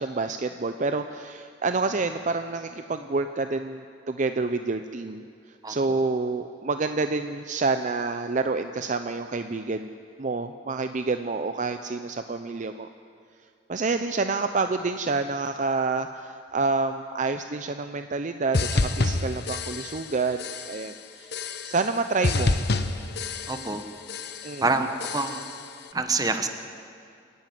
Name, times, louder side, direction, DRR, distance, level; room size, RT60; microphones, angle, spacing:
voice 1, 0.0-5.2 5.7-9.9 10.2-12.9 13.7-21.3 21.6-22.6 24.4-24.6, right 3 dB, 45° right, 8 dB, 0.6 m, -28 dB
voice 2, 5.6-6.0 23.5-23.8 24.6-25.4 25.9-26.5, right 3 dB, 20° right, 7 dB, 1.2 m, -26 dB
sound 1, 18.5-20.1 20.4-20.9 21.3-22.0 22.2-23.8 24.1-24.6 25.0-25.6, left 3 dB, 60° left, 1.0 m, -28 dB
26.5 x 11.0 x 9.4 m, 2.3 s
head